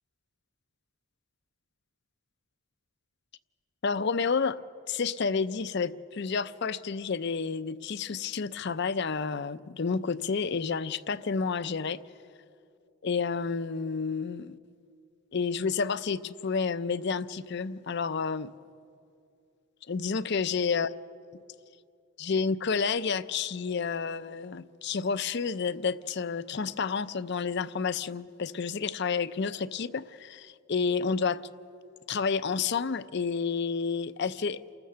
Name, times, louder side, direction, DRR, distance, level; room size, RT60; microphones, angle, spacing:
voice 1, 3.8-4.6 4.9-12.0 13.0-14.6 15.3-18.5 19.9-20.9 22.2-31.4 32.1-34.8, left 5 dB, 50° left, 15 dB, 0.5 m, -30 dB
29.0 x 14.0 x 6.8 m, 2.5 s
head